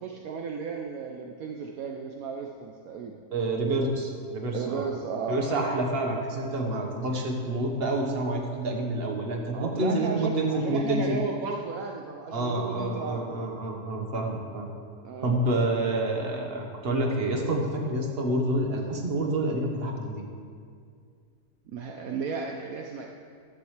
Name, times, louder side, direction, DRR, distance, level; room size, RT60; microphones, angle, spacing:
voice 1, 0.0-3.2 4.5-5.5 9.5-13.4 15.0-15.3 21.7-23.1, right 5 dB, 70° right, 2 dB, 1.1 m, -34 dB
voice 2, 3.3-4.9 5.3-11.2 12.3-14.7 15.2-20.2, right 1 dB, 40° right, 1 dB, 1.5 m, -28 dB
14.5 x 11.0 x 3.3 m, 2.2 s
omnidirectional pair, 1.6 m